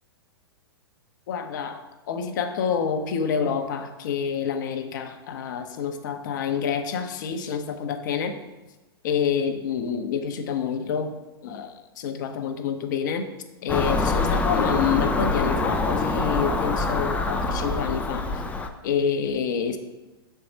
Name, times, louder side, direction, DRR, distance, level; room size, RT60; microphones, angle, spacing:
voice 1, 1.3-8.4 9.0-11.2 11.4-13.3 13.6-18.3 18.8-19.8, left 7 dB, 50° left, 7 dB, 0.7 m, -27 dB
Car passing by / Engine, 13.7-18.7, left 3 dB, 10° left, 0.5 m, -25 dB
6.8 x 4.5 x 5.1 m, 1.1 s
figure-of-eight pair, 105°, 13 cm